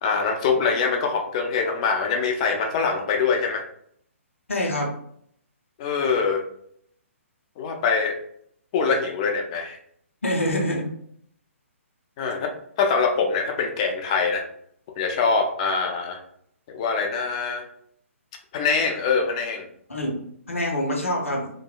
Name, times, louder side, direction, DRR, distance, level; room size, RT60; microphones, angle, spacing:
voice 1, 0.0-3.6 5.8-6.4 7.6-8.2 8.7-9.8 12.2-12.5 12.8-14.4 15.0-16.2 16.7-17.6 18.5-19.6, left 5 dB, 25° left, 3 dB, 0.3 m, -23 dB
voice 2, 4.5-4.9 10.2-10.9 19.9-20.2 20.5-21.5, left 1 dB, 65° left, -1 dB, 0.7 m, -25 dB
2.9 x 2.0 x 2.4 m, 0.66 s
figure-of-eight pair, 130°, 8 cm